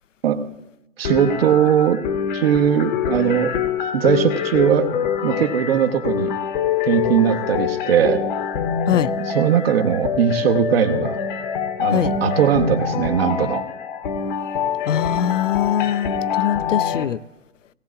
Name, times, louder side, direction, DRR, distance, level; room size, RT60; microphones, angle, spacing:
sound 1, 1.0-17.0, left 7 dB, 40° left, 0.9 m, -25 dB
voice 1, 1.0-2.0 2.3-3.5 3.9-4.9 5.2-6.3 6.8-8.2 9.3-11.2 11.8-13.6, right 9 dB, 50° right, 1.1 m, -19 dB
voice 2, 14.9-17.2, left 9 dB, 70° left, 0.6 m, -22 dB
18.0 x 17.0 x 2.4 m
figure-of-eight pair, 125°, 39 cm